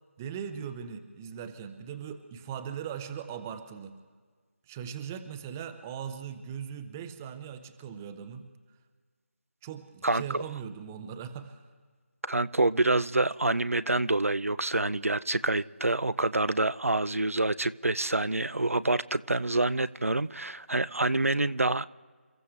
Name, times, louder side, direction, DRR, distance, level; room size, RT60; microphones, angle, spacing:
voice 1, 0.2-4.0 4.7-8.5 9.6-11.6, right 8 dB, 10° right, 0.6 m, -39 dB
voice 2, 10.0-10.4 12.2-21.9, right 2 dB, 85° right, 0.6 m, -27 dB
29.0 x 15.0 x 3.3 m
figure-of-eight pair, 160°, 7 cm